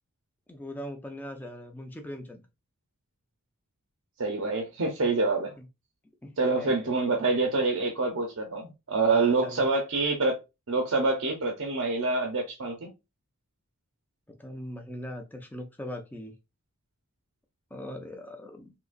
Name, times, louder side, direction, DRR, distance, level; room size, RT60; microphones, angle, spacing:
voice 1, 0.5-2.4 5.6-5.7 6.2-6.9 9.1-9.6 14.3-16.3 17.7-18.7, left 1 dB, 10° left, 0.5 m, -40 dB
voice 2, 4.2-5.5 6.4-10.4 10.7-12.9, right 3 dB, 65° right, 0.7 m, -26 dB
3.8 x 2.9 x 2.5 m
head